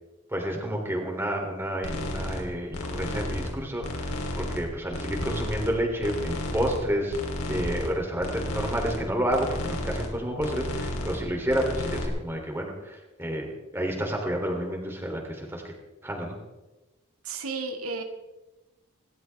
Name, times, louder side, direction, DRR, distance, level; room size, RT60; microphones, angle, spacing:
voice 1, 0.3-7.2 7.5-15.7 16.0-16.3, equal, 10° right, 1 dB, 3.0 m, -30 dB
sound 1, 1.8-2.4 2.7-3.5 3.8-4.6 4.9-5.7 6.0-6.8 7.1-7.9 8.2-9.0 9.3-10.1 10.4-11.2 11.5-12.1, left 1 dB, 80° left, 3.0 m, -32 dB
voice 2, 17.2-18.0, right 4 dB, 85° right, 3 dB, 2.1 m, -33 dB
27.5 x 13.0 x 3.5 m, 1.1 s
head